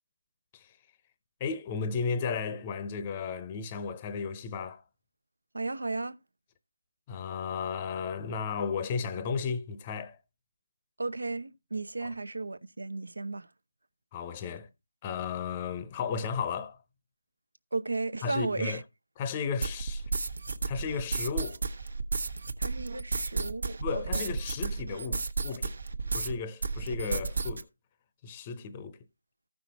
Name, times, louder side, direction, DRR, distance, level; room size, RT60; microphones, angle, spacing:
voice 1, 1.4-4.8 7.1-10.2 12.0-12.1 14.1-14.7 15.0-16.8 18.2-18.8 19.2-20.0 20.7-21.6 23.8-25.7 26.1-27.7 28.2-29.0, left 5 dB, 20° left, 0.7 m, -34 dB
voice 2, 5.5-6.2 11.0-13.5 17.7-18.8 22.6-24.3, right 3 dB, 80° right, 0.8 m, -34 dB
sound 1, 19.6-26.3 26.6-27.6, right 4 dB, 60° right, 1.2 m, -32 dB
14.0 x 5.9 x 4.1 m
figure-of-eight pair, 165°, 0 cm